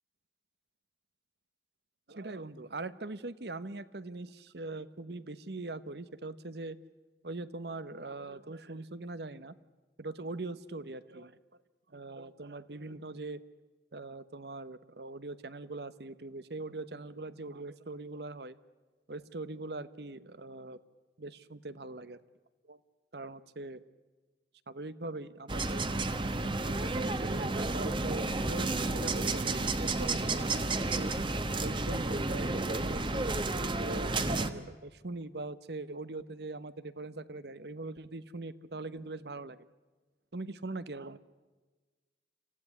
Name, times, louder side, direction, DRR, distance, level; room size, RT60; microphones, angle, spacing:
voice 1, 2.1-6.8 7.2-9.5 10.0-11.4 11.9-13.4 13.9-18.6 19.1-20.8 21.2-22.2 22.7-22.8 23.1-23.8 24.7-25.8 26.6-31.1 31.6-33.3 33.8-39.6 40.3-41.2, right 2 dB, 65° right, 15 dB, 1.0 m, -41 dB
sound 1, 25.5-34.5, right 2 dB, 30° right, 1.2 m, -31 dB
27.0 x 15.5 x 9.9 m, 1.3 s
head